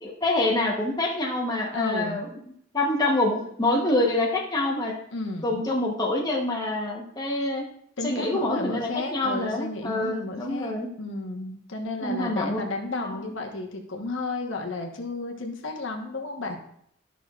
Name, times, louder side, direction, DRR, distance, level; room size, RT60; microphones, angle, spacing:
voice 1, 0.0-2.3 2.7-4.9 5.4-7.7 8.0-10.9 12.0-12.6 12.9-13.2, left 2 dB, 20° left, -2 dB, 0.9 m, -26 dB
voice 2, 1.7-2.3 5.1-5.6 8.0-16.6, left 2 dB, 70° left, 2 dB, 1.1 m, -33 dB
12.0 x 6.1 x 2.4 m, 0.68 s
head